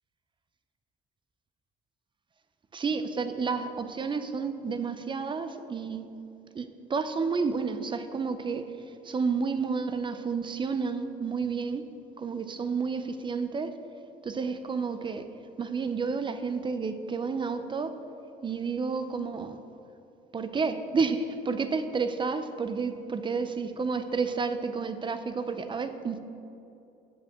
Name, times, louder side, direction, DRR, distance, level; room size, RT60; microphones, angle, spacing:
voice 1, 2.7-6.1 6.5-8.7 9.0-11.8 12.2-13.7 14.2-15.3 15.6-17.9 18.4-19.6 20.3-26.2, right 5 dB, 30° right, 10 dB, 0.6 m, -30 dB
15.5 x 7.9 x 3.7 m, 2.7 s
cardioid pair, 110°, 17 cm